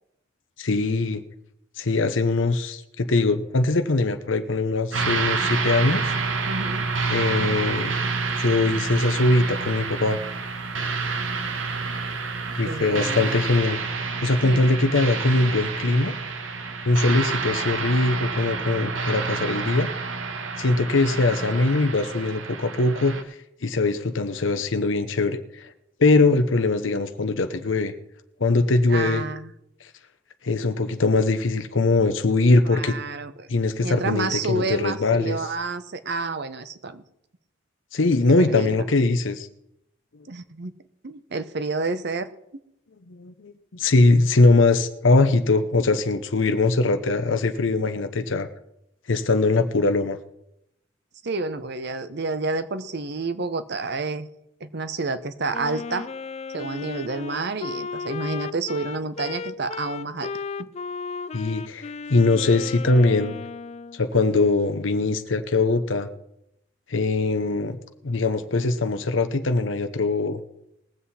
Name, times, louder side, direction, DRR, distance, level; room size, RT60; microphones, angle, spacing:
voice 1, 0.6-1.2 1.8-6.1 7.1-8.0 8.4-10.2 12.6-13.8 14.2-16.1 16.9-19.9 20.6-23.2 23.6-25.7 26.0-27.9 28.4-29.2 30.4-32.9 33.5-35.4 37.9-39.5 43.1-48.5 49.1-50.2 61.3-63.4 63.9-66.1 66.9-67.8 68.0-70.4, left 3 dB, 75° left, 8 dB, 0.8 m, -21 dB
sound 1, 4.9-23.2, right 4 dB, 85° right, 1.3 m, -28 dB
voice 2, 6.5-6.9 12.6-13.4 14.4-14.8 28.9-29.5 32.6-33.5 33.8-37.0 38.4-38.8 40.3-40.7 41.0-42.3 51.2-54.3 54.6-56.1 56.5-60.3 60.6-60.7, right 3 dB, 60° right, 12 dB, 0.8 m, -29 dB
Wind instrument woodwind instrument, 55.5-64.0, left 5 dB, 35° left, 0.4 m, -35 dB
20.5 x 7.8 x 4.2 m, 0.79 s
head